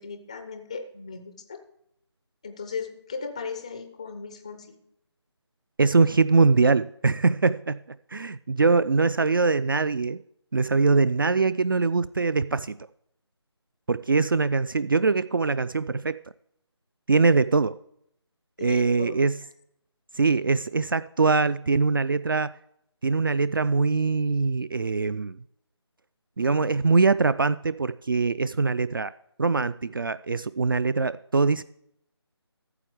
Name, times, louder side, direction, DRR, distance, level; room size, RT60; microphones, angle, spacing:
voice 1, 0.0-1.6 2.4-4.8 18.6-19.2, left 5 dB, 15° left, 0.4 m, -37 dB
voice 2, 5.8-7.8 8.1-10.2 10.5-12.8 13.9-16.2 17.1-17.8 18.6-19.4 20.1-22.5 23.0-25.4 26.4-29.1 29.4-31.6, right 4 dB, 50° right, 0.4 m, -22 dB
13.5 x 7.1 x 4.7 m
figure-of-eight pair, 160°, 15 cm